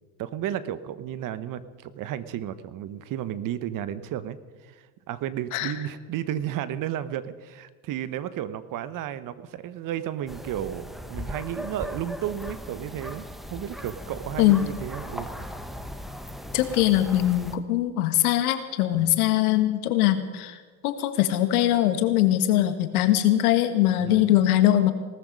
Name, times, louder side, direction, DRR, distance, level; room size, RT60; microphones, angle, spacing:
voice 1, 0.2-4.4 4.6-15.3 18.9-19.1 24.0-24.3, right 11 dB, 45° right, 14 dB, 1.1 m, -33 dB
sound 1, 10.3-17.6, equal, ahead, 1.1 m, -38 dB
voice 2, 16.5-20.6 20.8-24.9, left 13 dB, 80° left, 10 dB, 1.6 m, -22 dB
18.0 x 13.5 x 5.3 m, 1.4 s
supercardioid pair, 100°, 44 cm